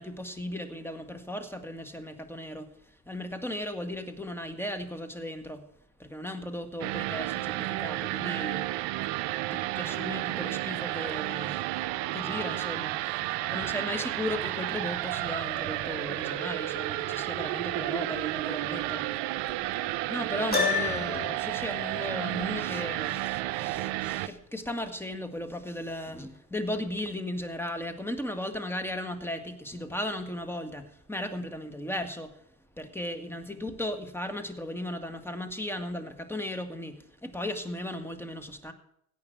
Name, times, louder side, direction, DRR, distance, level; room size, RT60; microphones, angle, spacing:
voice 1, 0.0-2.7 3.1-5.6 6.0-8.6 9.5-11.6 12.1-12.9 13.5-19.1 20.1-32.3 32.8-38.7, left 1 dB, 5° left, 8 dB, 1.8 m, -36 dB
sound 1, 6.8-24.3, right 17 dB, 60° right, 0.7 m, -32 dB
Piano, 20.5-21.4, left 4 dB, 20° left, 4.4 m, -27 dB
16.5 x 6.1 x 8.1 m, 0.73 s
hypercardioid pair, 60°, 46 cm